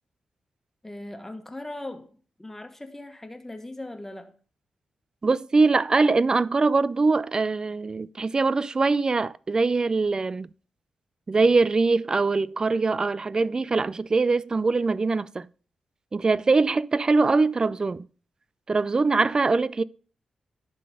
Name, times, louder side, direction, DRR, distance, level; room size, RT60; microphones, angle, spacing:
voice 1, 0.8-2.1 2.4-4.4, left 1 dB, 15° left, 1.4 m, -39 dB
voice 2, 5.2-10.5 11.3-15.5 16.1-18.0 18.7-19.8, right 3 dB, 35° right, 0.3 m, -22 dB
11.0 x 3.9 x 5.1 m
cardioid pair, 60°, 2 cm